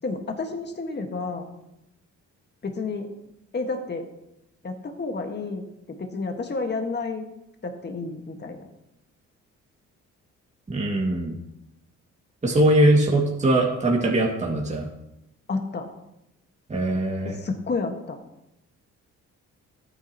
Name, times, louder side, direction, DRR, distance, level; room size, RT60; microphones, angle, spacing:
voice 1, 0.0-1.5 2.6-3.1 3.5-4.1 4.6-7.3 7.6-8.7 15.5-15.9 17.2-18.2, left 3 dB, 35° left, 4 dB, 1.6 m, -30 dB
voice 2, 10.7-11.4 12.4-14.9 16.7-17.4, right 1 dB, 25° right, -2 dB, 2.2 m, -21 dB
14.0 x 9.5 x 3.0 m, 0.85 s
cardioid pair, 90°, 30 cm